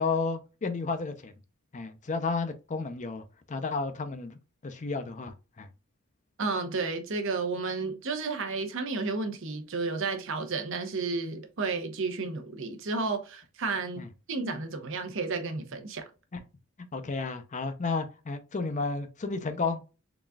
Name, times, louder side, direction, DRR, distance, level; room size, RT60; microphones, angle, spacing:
voice 1, 0.0-1.3 1.7-5.7 14.0-14.1 16.3-16.4 16.9-19.8, left 4 dB, 35° left, 0.5 m, -32 dB
voice 2, 6.4-16.1, right 4 dB, 60° right, 0.8 m, -32 dB
4.0 x 3.5 x 2.3 m
head